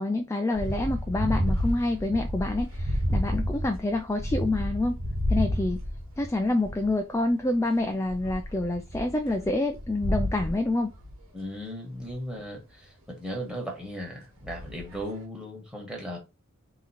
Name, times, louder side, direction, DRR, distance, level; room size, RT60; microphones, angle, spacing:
voice 1, 0.0-5.0 5.3-5.8 6.2-10.9, left 2 dB, 15° left, 0.3 m, -27 dB
sound 1, 0.5-7.0 7.3-11.2 12.0-12.1 14.4-15.0, equal, 80° right, 1.4 m, -30 dB
voice 2, 11.3-16.2, equal, 5° right, 1.4 m, -37 dB
3.8 x 3.0 x 4.1 m
head